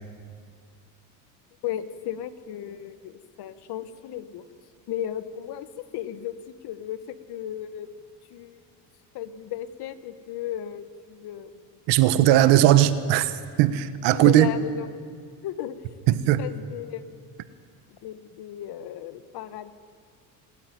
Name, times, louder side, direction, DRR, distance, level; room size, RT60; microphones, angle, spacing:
voice 1, 1.6-4.4 4.9-5.7 5.9-6.4 6.6-7.9 8.3-8.6 9.1-11.7 12.3-12.7 14.1-14.9 15.4-15.7 16.4-17.2 17.9-19.7, left 11 dB, 60° left, 12 dB, 1.4 m, -35 dB
voice 2, 11.9-14.5 16.1-16.4, right 13 dB, 70° right, 12 dB, 1.3 m, -19 dB
26.5 x 13.0 x 9.4 m, 2.1 s
supercardioid pair, 100°, 44 cm